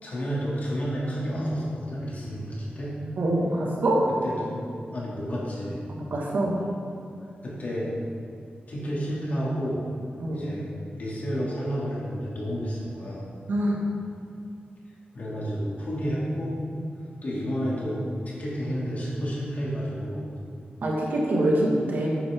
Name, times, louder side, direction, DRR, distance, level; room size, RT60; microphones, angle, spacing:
voice 1, 0.0-3.0 4.1-4.7 4.9-5.8 7.4-7.9 8.7-9.8 10.3-10.7 11.0-13.3 15.1-16.6 17.2-20.3, equal, 50° left, -6 dB, 2.9 m, -30 dB
voice 2, 3.2-4.1 5.9-6.5 10.2-10.5 13.5-13.8 20.8-22.1, right 1 dB, 60° right, -3 dB, 2.1 m, -24 dB
13.0 x 9.4 x 3.8 m, 2.5 s
wide cardioid pair, 175°, 4 cm